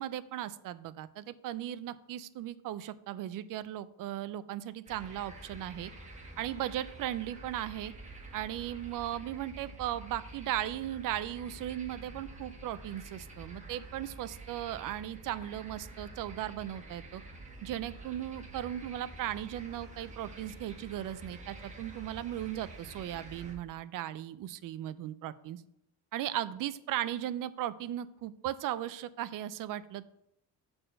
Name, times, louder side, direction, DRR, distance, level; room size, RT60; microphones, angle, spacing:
voice 1, 0.0-5.9 6.4-7.9 8.3-17.2 17.6-25.6 26.1-30.0, right 12 dB, 60° right, 16 dB, 0.5 m, -37 dB
sound 1, 4.9-23.5, right 2 dB, 20° right, 1.2 m, -48 dB
6.5 x 4.3 x 6.5 m, 0.77 s
cardioid pair, 175°, 38 cm